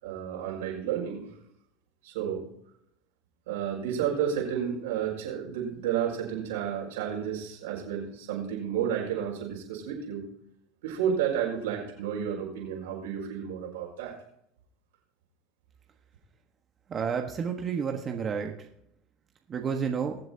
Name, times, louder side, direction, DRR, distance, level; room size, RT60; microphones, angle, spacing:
voice 1, 0.0-1.3 2.0-2.4 3.5-10.2 10.8-14.2, right 8 dB, 85° right, -2 dB, 5.8 m, -31 dB
voice 2, 16.9-18.7 19.5-20.2, right 6 dB, 35° right, 3 dB, 1.3 m, -30 dB
23.0 x 7.7 x 2.8 m, 0.74 s
supercardioid pair, 100°, 0 cm